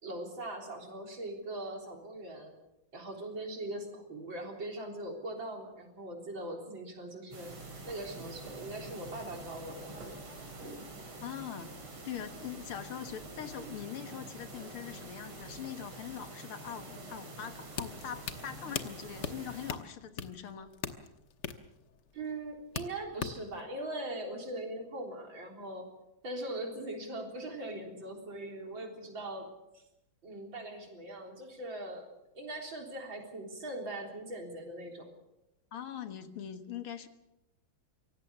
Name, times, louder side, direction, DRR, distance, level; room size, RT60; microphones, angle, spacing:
voice 1, 0.0-2.5 2.9-7.5 7.8-10.0 22.1-25.9 26.2-29.5 29.7-29.8 30.2-32.1 32.3-35.1, right 1 dB, 60° right, 2 dB, 4.4 m, -41 dB
sound 1, 7.3-19.7, right 2 dB, 80° right, 5.1 m, -46 dB
voice 2, 11.2-11.8 12.0-20.7 35.7-37.1, left 9 dB, 85° left, 9 dB, 2.3 m, -42 dB
sound 2, 17.7-23.6, left 7 dB, 60° left, 1.6 m, -41 dB
24.5 x 17.5 x 6.8 m, 0.92 s
omnidirectional pair, 2.3 m